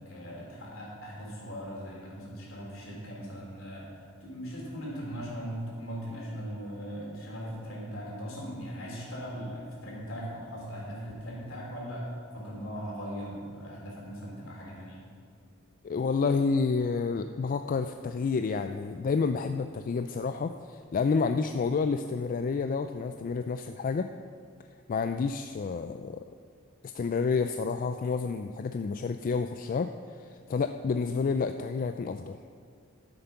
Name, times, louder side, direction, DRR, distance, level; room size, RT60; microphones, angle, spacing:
voice 1, 0.0-3.9 4.2-15.0, equal, 70° left, -4 dB, 3.6 m, -39 dB
voice 2, 15.8-24.1 24.9-26.2 26.8-29.9 30.2-32.4, left 4 dB, 40° left, 8 dB, 0.3 m, -29 dB
12.5 x 7.8 x 5.8 m, 2.2 s
head